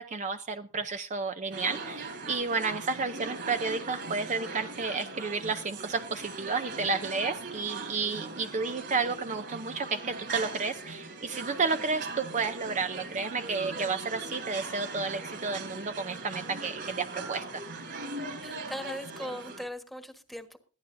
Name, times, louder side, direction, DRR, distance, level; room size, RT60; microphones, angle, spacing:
voice 1, 0.0-17.6, right 4 dB, 35° right, 8 dB, 0.6 m, -31 dB
sound 1, 1.5-19.7, right 3 dB, 55° right, 4.2 m, -40 dB
voice 2, 18.4-20.6, equal, ahead, 7 dB, 1.4 m, -39 dB
21.0 x 14.5 x 2.7 m, 0.38 s
head